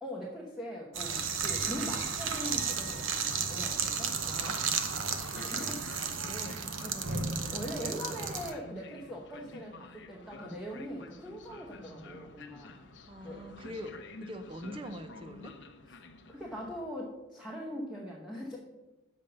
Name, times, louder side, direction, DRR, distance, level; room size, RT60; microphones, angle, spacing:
voice 1, 0.0-4.5 5.3-6.2 6.8-12.8 13.2-13.4 16.3-18.6, equal, ahead, -4 dB, 0.9 m, -41 dB
sound 1, 0.9-8.5, right 6 dB, 75° right, 0.8 m, -33 dB
Train, 1.3-16.8, left 3 dB, 60° left, 0.8 m, -50 dB
voice 2, 4.2-5.0 5.5-6.8 7.4-7.6 8.2-8.4 9.4-9.7 11.8-12.1 13.1-15.5, equal, 25° right, 8 dB, 0.6 m, -45 dB
7.2 x 5.3 x 6.6 m, 1.1 s
head